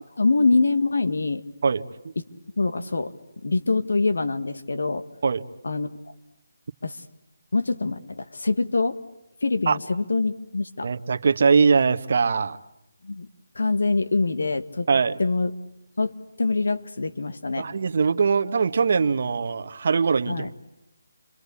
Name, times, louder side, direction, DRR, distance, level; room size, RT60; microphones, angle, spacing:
voice 1, 0.2-1.4 2.2-2.3 2.6-3.1 3.4-5.0 5.6-5.9 6.8-7.0 7.5-9.0 9.4-10.9 13.0-13.3 13.6-14.9 15.2-15.5 16.0-16.1 16.4-17.7 20.3-20.5, left 3 dB, 80° left, 9 dB, 1.8 m, -24 dB
voice 2, 10.8-12.6 14.9-15.2 17.6-20.5, right 5 dB, 50° right, 8 dB, 1.3 m, -21 dB
29.5 x 24.0 x 8.4 m, 0.85 s
figure-of-eight pair, 165°, 0 cm